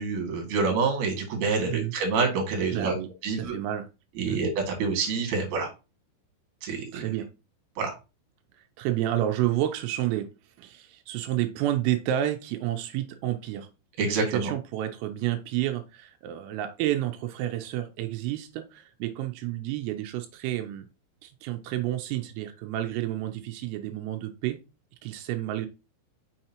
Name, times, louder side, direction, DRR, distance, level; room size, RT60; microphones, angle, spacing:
voice 1, 0.0-2.9 3.2-3.5 4.2-5.7 6.6-7.0 7.8-7.9 14.0-14.5, right 4 dB, 50° right, 2.9 m, -27 dB
voice 2, 2.7-3.1 3.4-3.9 4.3-4.4 6.7-7.3 8.5-10.3 10.6-13.7 14.0-20.9 21.2-24.6 25.0-25.7, right 13 dB, 85° right, 3.3 m, -30 dB
6.6 x 6.4 x 2.9 m
omnidirectional pair, 5.9 m